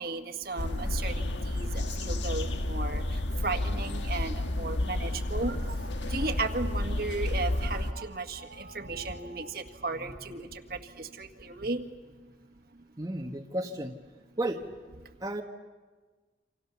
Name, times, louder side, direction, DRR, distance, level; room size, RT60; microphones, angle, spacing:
voice 1, 0.0-11.9 12.7-12.8, right 3 dB, 55° right, 6 dB, 1.7 m, -35 dB
sound 1, 0.6-7.9, left 1 dB, 90° left, 1.7 m, -31 dB
voice 2, 13.0-13.9 14.4-14.6 15.2-15.4, right 1 dB, 20° right, 3 dB, 1.2 m, -32 dB
28.0 x 26.5 x 7.0 m, 1.4 s
head